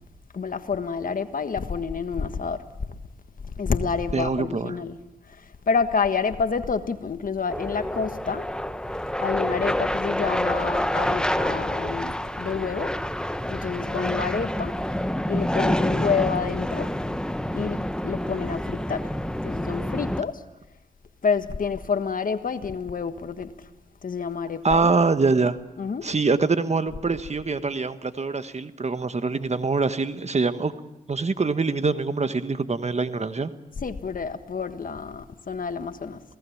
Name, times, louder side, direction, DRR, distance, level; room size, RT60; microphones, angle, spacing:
voice 1, 0.3-2.6 3.5-5.0 5.3-8.6 9.2-13.0 13.5-14.7 15.3-16.9 17.5-19.1 19.4-20.4 21.2-23.6 24.0-25.0 25.8-26.1 33.8-36.2, left 5 dB, 60° left, 1.5 m, -28 dB
voice 2, 4.1-4.7 24.6-25.6 26.0-30.7 31.1-33.5, right 4 dB, 45° right, 1.4 m, -24 dB
sound 1, 7.5-20.2, left 1 dB, 5° left, 1.1 m, -27 dB
28.0 x 18.0 x 7.2 m
cardioid pair, 45°, 16 cm